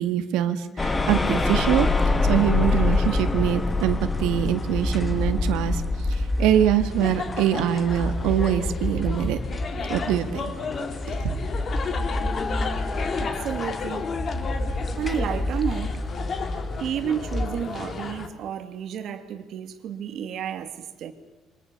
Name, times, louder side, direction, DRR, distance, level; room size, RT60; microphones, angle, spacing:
voice 1, 0.0-1.9 2.3-9.4 9.9-10.4 11.1-11.3, right 10 dB, 85° right, 8 dB, 1.9 m, -24 dB
sound 1, 0.8-17.5, left 2 dB, 15° left, 1.7 m, -26 dB
sound 2, 6.4-18.3, left 5 dB, 30° left, 2.3 m, -33 dB
voice 2, 13.2-14.1 15.0-16.0 16.8-21.1, right 8 dB, 50° right, 8 dB, 2.4 m, -31 dB
28.5 x 24.5 x 6.9 m, 1.1 s
cardioid pair, 165°, 0 cm